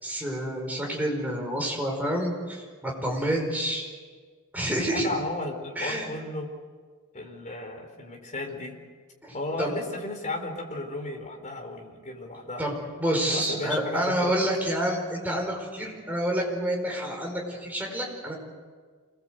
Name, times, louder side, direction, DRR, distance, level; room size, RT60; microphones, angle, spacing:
voice 1, 0.0-3.9 4.5-5.1 5.7-6.1 9.2-9.7 12.6-12.7 13.0-18.3, equal, 5° right, -1 dB, 5.1 m, -28 dB
voice 2, 4.7-6.5 7.1-8.7 9.3-12.6 13.3-14.3, left 2 dB, 35° left, 2 dB, 4.4 m, -34 dB
27.0 x 20.5 x 8.0 m, 1.6 s
head